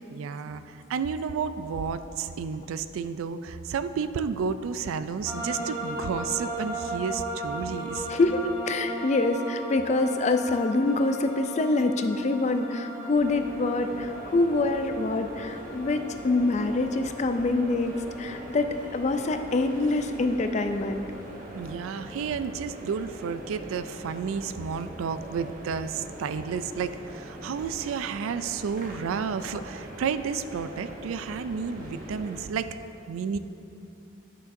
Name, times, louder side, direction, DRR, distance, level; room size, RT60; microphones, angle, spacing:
voice 1, 0.1-8.1 21.5-32.7 33.1-33.4, right 6 dB, 90° right, 12 dB, 0.3 m, -31 dB
sound 1, 5.2-23.0, right 1 dB, 20° right, 1.6 m, -38 dB
voice 2, 8.1-21.0, left 2 dB, 35° left, 7 dB, 0.3 m, -25 dB
sound 2, 13.1-32.4, right 1 dB, 40° right, 0.9 m, -42 dB
11.5 x 6.5 x 2.6 m, 2.8 s
head